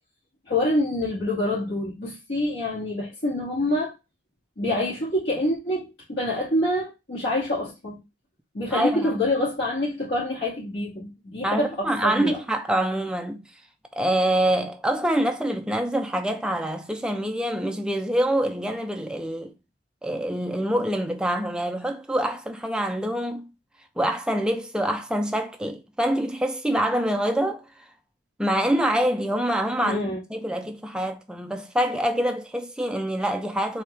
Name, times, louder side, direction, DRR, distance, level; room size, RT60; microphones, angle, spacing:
voice 1, 0.5-3.9 4.6-8.0 8.5-12.4 29.8-30.2, left 1 dB, 70° left, 1.9 m, -26 dB
voice 2, 8.7-9.2 11.4-13.4 13.9-19.5 20.0-23.5 24.0-27.7 28.4-33.8, right 1 dB, 5° right, 0.4 m, -25 dB
4.3 x 2.8 x 3.3 m
head